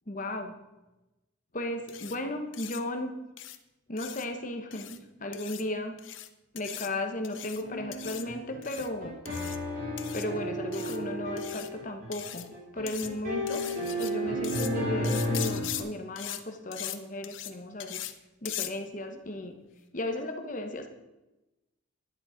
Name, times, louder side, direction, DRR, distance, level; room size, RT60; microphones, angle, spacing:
voice 1, 0.1-0.6 1.5-3.2 3.9-6.0 6.5-9.2 10.1-12.5 12.7-13.7 13.9-18.0 18.4-19.6 19.9-20.9, left 1 dB, 45° left, 5 dB, 1.3 m, -35 dB
sound 1, 1.9-2.2 2.5-2.8 3.4-3.6 4.0-4.3 4.7-5.0 5.3-5.6 6.0-6.3 6.6-6.9 7.2-7.6 7.9-8.3 8.6-8.9 9.3-9.6 10.0-10.3 10.7-11.0 11.4-11.7 12.1-12.5 12.9-13.1 13.5-14.1 14.4-14.7 15.0-15.8 16.2-16.4 16.7-17.0 17.2-17.5 17.8-18.1 18.5-18.7, left 13 dB, 90° left, 0.8 m, -39 dB
sound 2, 7.6-15.8, equal, 45° right, 4.2 m, -33 dB
11.0 x 10.5 x 5.1 m, 1.0 s
head